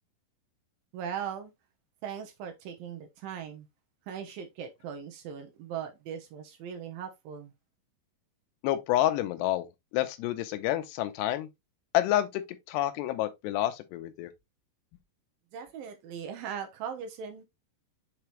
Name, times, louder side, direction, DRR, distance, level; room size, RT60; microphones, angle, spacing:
voice 1, 0.9-1.5 2.0-3.7 4.1-7.5 15.5-17.4, right 8 dB, 75° right, 2.1 m, -39 dB
voice 2, 8.6-9.7 9.9-11.5 11.9-12.4 12.7-14.3, left 13 dB, 75° left, 2.7 m, -28 dB
6.9 x 4.7 x 3.1 m
omnidirectional pair, 5.3 m